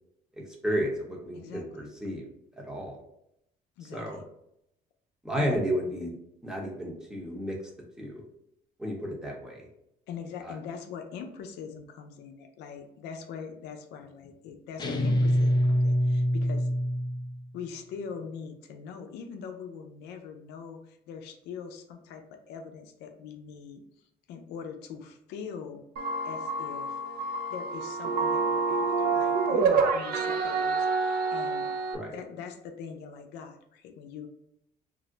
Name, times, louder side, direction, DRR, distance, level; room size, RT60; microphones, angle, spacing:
voice 1, 0.4-2.2 2.6-3.0 3.9-4.2 5.2-6.1 6.4-7.6 8.0-8.2 8.8-9.7 10.4-10.5 31.9-32.1, equal, 5° right, -2 dB, 0.8 m, -32 dB
voice 2, 1.3-1.9 3.8-4.1 5.4-5.6 10.1-16.7 17.5-23.8 24.3-25.9 26.2-27.0 27.5-31.7 32.1-34.3, left 6 dB, 85° left, 5 dB, 0.5 m, -42 dB
sound 1, 14.8-17.4, equal, 25° left, 0.4 m, -25 dB
sound 2, 26.0-32.0, right 4 dB, 60° right, 0.4 m, -27 dB
2.5 x 2.0 x 3.8 m, 0.78 s
cardioid pair, 110°, 17 cm